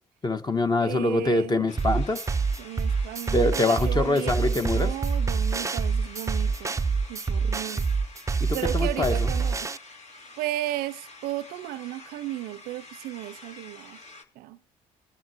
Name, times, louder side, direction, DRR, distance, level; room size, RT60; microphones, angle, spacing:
voice 1, 0.2-2.2 3.3-4.9 8.4-9.3, left 2 dB, 25° left, 1.4 m, -24 dB
voice 2, 0.8-1.7 2.6-6.7 7.1-7.9 8.5-9.7 10.4-14.0 14.4-14.6, right 15 dB, 75° right, 0.5 m, -35 dB
sound 1, 1.7-14.2, left 3 dB, 45° left, 2.0 m, -48 dB
sound 2, 1.8-9.8, right 4 dB, 20° right, 0.5 m, -26 dB
21.0 x 10.5 x 2.9 m
supercardioid pair, 60°, 16 cm